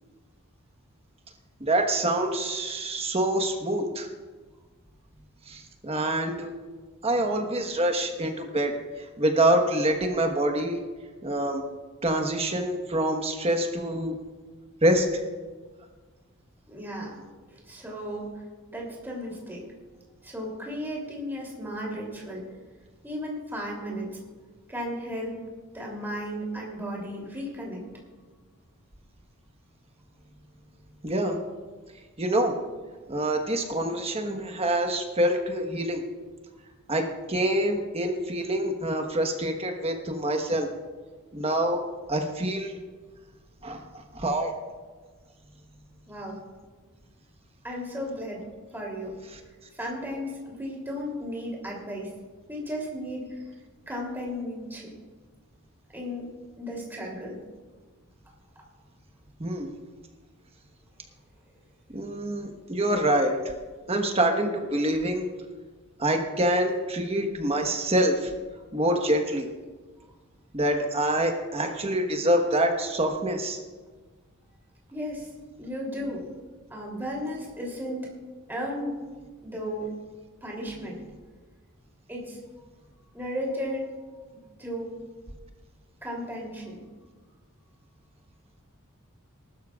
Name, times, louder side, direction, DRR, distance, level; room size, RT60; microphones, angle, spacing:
voice 1, 1.6-4.1 5.5-6.5 7.0-8.7 9.0-10.8 11.2-11.6 12.0-14.1 14.8-15.1 31.0-31.4 32.2-32.5 33.1-36.0 36.9-40.7 41.3-41.8 42.1-42.8 43.6-44.5 59.4-59.7 61.9-63.4 63.9-65.3 66.0-68.3 68.7-69.5 70.5-73.6, right 1 dB, 30° right, 4 dB, 1.2 m, -26 dB
voice 2, 16.7-18.4 18.7-19.6 20.2-22.4 23.0-24.1 24.7-25.4 25.7-27.8 46.1-46.4 47.6-48.4 48.7-49.1 49.7-52.1 52.5-53.5 53.9-54.9 55.9-56.3 56.6-57.4 74.9-75.3 75.6-76.2 76.7-78.1 78.5-78.9 79.4-79.9 80.4-81.0 82.1-82.4 83.1-83.9 84.6-84.9 86.0-86.8, equal, 10° right, -3 dB, 3.0 m, -34 dB
20.0 x 12.0 x 2.4 m, 1.4 s
head